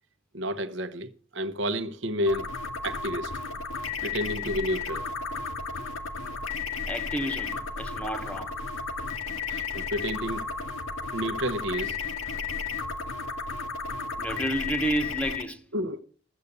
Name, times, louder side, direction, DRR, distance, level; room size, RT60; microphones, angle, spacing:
voice 1, 0.3-2.5 2.8-3.3 4.0-5.1 9.5-10.5 11.1-12.0 15.7-16.0, equal, 55° right, 1.0 m, -30 dB
sound 1, 2.3-15.4, left 4 dB, 75° left, 2.0 m, -33 dB
voice 2, 6.9-8.6 14.2-15.6, right 1 dB, 5° left, 1.2 m, -31 dB
14.5 x 8.3 x 6.8 m
head